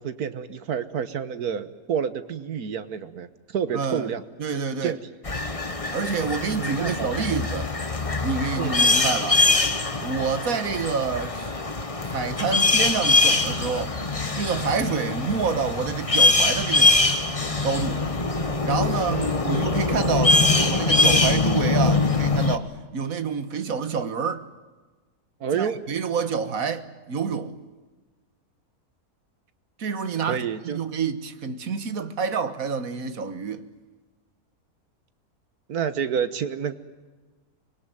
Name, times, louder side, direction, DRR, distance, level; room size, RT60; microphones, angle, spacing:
voice 1, 0.0-3.3 3.5-4.2 4.8-5.0 6.6-7.2 8.6-9.0 19.1-19.4 25.4-25.8 30.2-30.8 35.7-36.7, right 7 dB, 90° right, 1.7 m, -29 dB
voice 2, 3.7-4.1 4.4-5.0 5.9-7.8 8.2-9.5 10.0-11.5 12.0-14.0 14.4-16.9 17.6-18.1 18.7-24.5 25.5-27.6 29.8-33.7, right 5 dB, 70° right, 1.8 m, -28 dB
sound 1, 5.2-22.6, left 3 dB, 25° left, 1.4 m, -23 dB
25.0 x 21.0 x 9.2 m
omnidirectional pair, 1.6 m